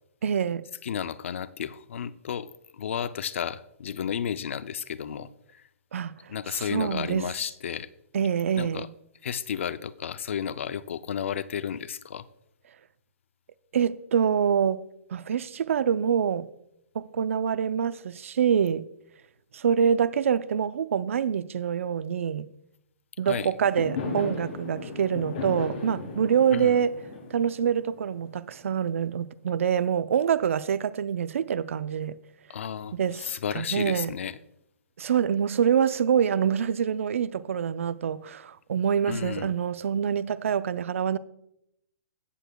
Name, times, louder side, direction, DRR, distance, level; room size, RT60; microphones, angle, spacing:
voice 1, 0.2-0.7 5.9-6.3 6.7-7.3 8.1-8.8 13.7-14.8 15.1-16.5 16.9-18.9 19.5-22.5 23.2-26.9 27.3-32.1 32.9-34.1 35.0-41.2, right 8 dB, 65° right, 0.4 m, -26 dB
voice 2, 0.8-5.6 6.3-7.9 8.5-8.9 9.2-12.3 23.2-23.5 26.5-26.8 32.5-34.4 39.1-39.5, left 8 dB, 60° left, 0.4 m, -33 dB
Fireworks, 23.6-28.8, left 3 dB, 35° left, 3.0 m, -36 dB
15.5 x 6.9 x 2.3 m
hypercardioid pair, 175°, 8 cm